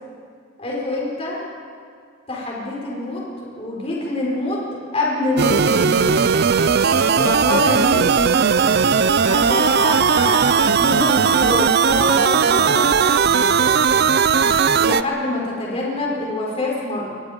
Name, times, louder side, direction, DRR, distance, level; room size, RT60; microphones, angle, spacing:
voice 1, 0.6-1.4 2.3-3.2 3.6-6.2 7.1-8.0 9.2-12.9 14.7-17.1, left 2 dB, 30° left, -4 dB, 5.3 m, -25 dB
sound 1, 5.4-15.0, right 6 dB, 50° right, 0.5 m, -17 dB
26.5 x 22.0 x 5.3 m, 2.2 s
head